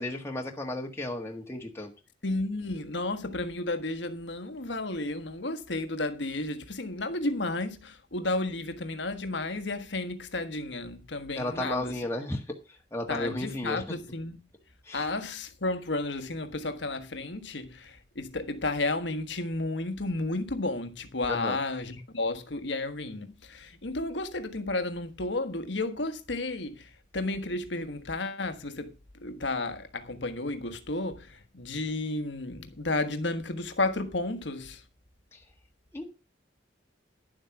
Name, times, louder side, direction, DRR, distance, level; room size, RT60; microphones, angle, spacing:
voice 1, 0.0-1.9 11.3-12.5 12.9-13.9 14.8-15.1 21.3-21.6 35.3-35.4 35.9-36.2, left 1 dB, 15° left, 1.5 m, -34 dB
voice 2, 2.2-12.0 13.1-14.4 14.9-28.9 29.2-34.8, left 2 dB, 65° left, 1.4 m, -32 dB
11.0 x 7.7 x 5.9 m
head